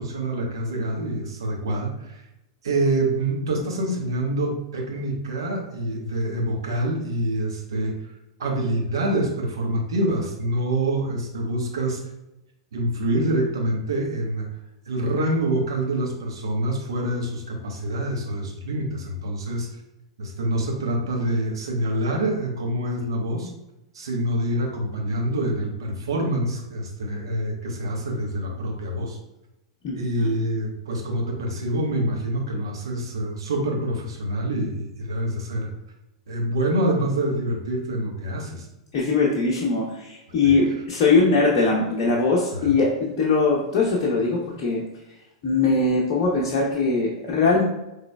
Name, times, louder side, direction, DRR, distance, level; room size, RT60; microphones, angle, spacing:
voice 1, 0.0-2.2 2.6-8.0 8.4-12.0 12.7-14.5 14.9-19.7 20.2-23.5 23.9-29.2 29.9-35.7 36.3-38.7 40.4-40.6 42.5-42.7, right 1 dB, 65° right, 0 dB, 1.1 m, -26 dB
voice 2, 29.8-30.3 38.9-44.8 45.4-47.6, left 3 dB, 40° left, -3 dB, 0.9 m, -21 dB
5.8 x 3.3 x 2.3 m, 0.92 s
figure-of-eight pair, 95°, 3 cm